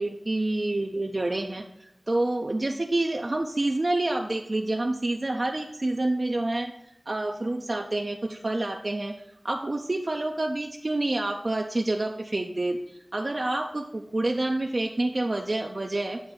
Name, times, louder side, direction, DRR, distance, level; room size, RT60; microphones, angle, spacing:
voice 1, 0.0-6.7 7.1-9.1 9.4-16.2, right 2 dB, 60° right, 2 dB, 0.4 m, -28 dB
7.7 x 2.6 x 5.8 m, 0.81 s
wide cardioid pair, 40°, 0 cm